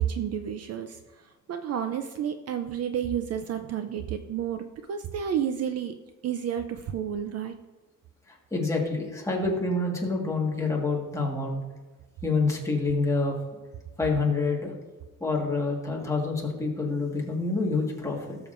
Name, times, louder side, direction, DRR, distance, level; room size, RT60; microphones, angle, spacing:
voice 1, 0.0-5.9 6.2-7.5, right 9 dB, 50° right, 8 dB, 0.5 m, -31 dB
voice 2, 8.3-11.6 12.2-13.4 14.0-14.7 15.2-18.4, left 3 dB, 10° left, -2 dB, 1.6 m, -27 dB
17.5 x 7.1 x 2.5 m, 1.2 s
cardioid pair, 175°, 33 cm